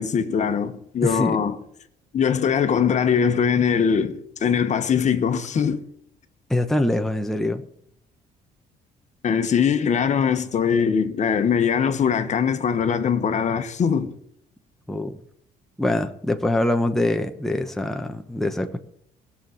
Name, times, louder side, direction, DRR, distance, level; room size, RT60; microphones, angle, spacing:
voice 1, 0.0-1.6 2.1-5.8 9.2-14.1, left 7 dB, 45° left, 1.3 m, -21 dB
voice 2, 1.0-1.4 6.5-7.6 14.9-15.2 15.8-18.8, left 1 dB, ahead, 1.0 m, -24 dB
16.0 x 7.2 x 7.8 m
cardioid pair, 110°, 17 cm